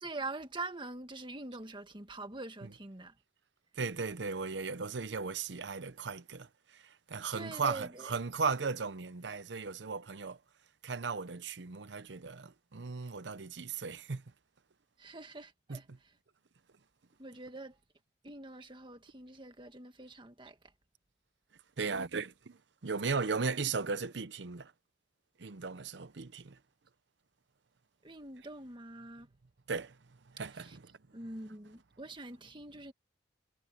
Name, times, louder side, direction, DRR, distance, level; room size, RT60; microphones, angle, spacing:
voice 1, 0.0-3.2 7.3-8.1 15.0-16.1 17.2-17.8 18.2-20.6 28.0-29.3 30.5-30.8 31.1-32.9, right 2 dB, 30° right, 1.9 m, -44 dB
voice 2, 3.7-10.4 10.8-14.2 15.7-16.0 21.8-24.7 25.4-26.6 29.7-30.0 30.3-30.9 31.2-31.5, right 4 dB, 85° right, 0.8 m, -37 dB
head